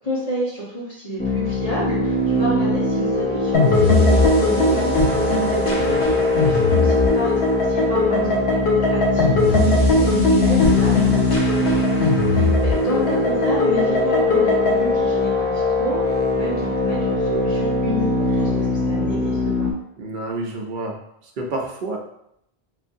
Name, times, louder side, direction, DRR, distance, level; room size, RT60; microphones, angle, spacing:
voice 1, 0.0-6.1 6.4-7.3 7.6-19.7, right 1 dB, 40° left, -8 dB, 1.0 m, -29 dB
sound 1, 1.2-19.7, left 3 dB, 15° left, 0.5 m, -22 dB
sound 2, 3.5-14.8, left 2 dB, 85° left, 1.1 m, -20 dB
voice 2, 5.7-6.0 6.6-6.8 11.0-11.2 20.0-21.0 21.4-22.0, right 2 dB, 55° right, 1 dB, 0.7 m, -30 dB
3.8 x 2.6 x 2.6 m, 0.75 s
omnidirectional pair, 1.0 m